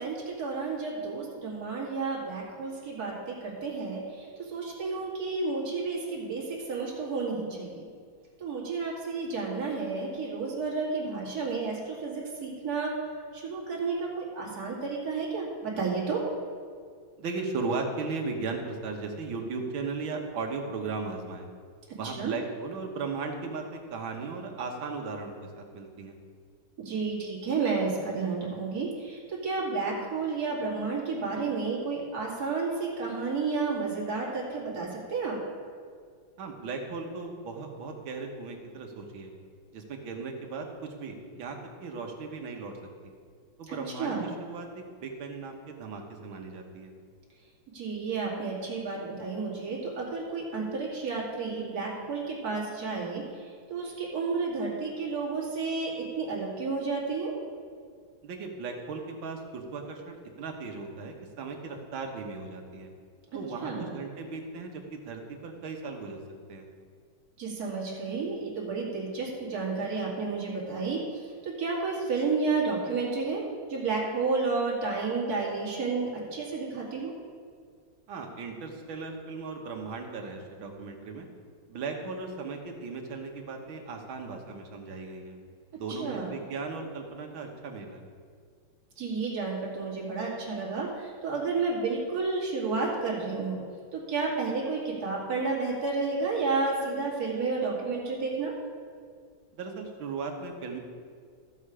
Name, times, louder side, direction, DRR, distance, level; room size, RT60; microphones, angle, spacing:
voice 1, 0.0-7.8 8.4-12.9 13.3-16.2 22.0-22.3 26.8-35.4 43.7-44.3 47.7-57.3 63.6-63.9 67.4-73.4 73.7-77.1 86.0-86.4 89.0-93.6 93.9-98.5, right 4 dB, 45° right, -5 dB, 2.7 m, -31 dB
voice 2, 17.2-21.5 22.0-26.2 36.4-39.3 39.7-42.7 43.0-43.1 43.6-44.7 45.0-46.9 58.2-62.9 63.3-66.2 66.5-66.7 78.1-81.3 81.7-85.4 85.8-88.0 99.5-100.8, right 4 dB, 75° right, 3 dB, 2.0 m, -37 dB
14.5 x 6.6 x 4.9 m, 2.1 s
omnidirectional pair, 2.3 m